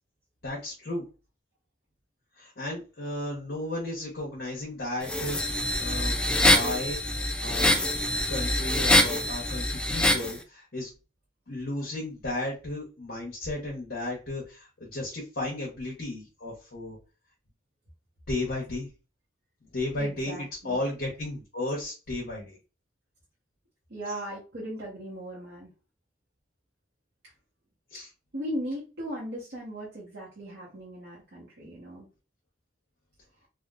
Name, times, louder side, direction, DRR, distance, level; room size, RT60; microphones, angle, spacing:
voice 1, 0.4-1.0 2.4-7.0 7.4-7.7 8.3-10.9 11.5-17.0 18.3-18.9 19.7-22.6 27.9-28.1, left 2 dB, 55° left, -3 dB, 0.9 m, -34 dB
sound 1, 5.0-10.3, left 1 dB, 5° left, 0.3 m, -24 dB
voice 2, 20.0-20.8 23.9-25.7 27.2-27.3 27.9-28.0 28.3-32.1, equal, 60° right, -6 dB, 1.0 m, -37 dB
3.5 x 2.4 x 2.4 m, 0.32 s
head